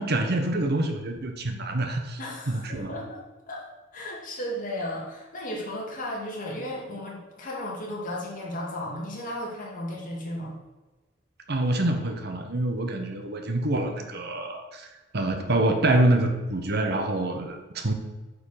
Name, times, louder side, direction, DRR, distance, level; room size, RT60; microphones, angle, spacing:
voice 1, 0.0-2.2 2.5-2.9 11.5-14.9 15.1-17.9, right 2 dB, 55° right, 5 dB, 1.1 m, -26 dB
voice 2, 2.2-3.2 3.5-3.7 3.9-10.6, left 1 dB, 45° left, -3 dB, 2.6 m, -34 dB
8.9 x 5.1 x 6.6 m, 1.2 s
head